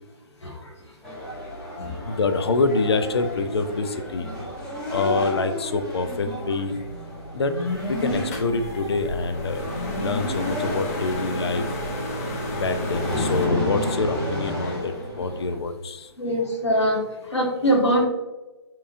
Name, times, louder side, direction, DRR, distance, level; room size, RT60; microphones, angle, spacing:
sound 1, 1.0-15.6, left 1 dB, 5° left, 0.9 m, -32 dB
voice 1, 2.1-4.3 4.9-6.8 7.3-7.5 7.9-9.7 10.0-11.6 12.5-16.1, left 3 dB, 65° left, 9 dB, 0.5 m, -26 dB
sound 2, 7.7-13.5, equal, 30° left, 0.8 m, -32 dB
voice 2, 16.2-17.0 17.3-18.0, equal, 85° left, -1 dB, 1.5 m, -22 dB
4.6 x 3.7 x 2.5 m, 1.1 s
hypercardioid pair, 145°, 14 cm